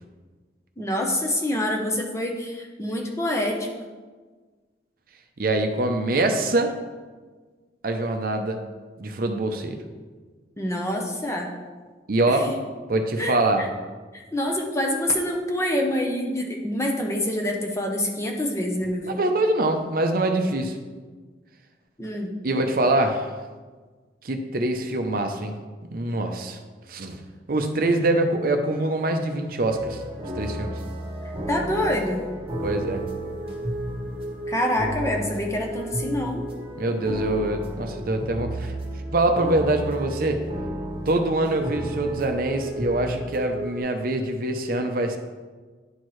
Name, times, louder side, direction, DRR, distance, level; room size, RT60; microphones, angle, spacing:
voice 1, 0.8-3.7 10.6-11.5 12.3-12.4 13.2-13.7 14.1-19.1 22.0-22.3 31.5-32.2 34.5-36.4, left 1 dB, 15° left, 1 dB, 0.7 m, -26 dB
voice 2, 5.4-6.7 7.8-8.6 9.0-9.8 12.1-12.5 12.9-13.6 19.0-20.8 22.4-23.3 24.2-25.5 25.9-26.6 26.9-27.2 27.5-30.0 30.3-30.7 32.6-33.0 36.8-38.8 39.1-40.4 41.1-45.2, right 2 dB, 50° right, 5 dB, 0.6 m, -24 dB
sound 1, 29.7-43.8, right 1 dB, 30° right, 1.1 m, -33 dB
10.5 x 4.5 x 3.1 m, 1.4 s
head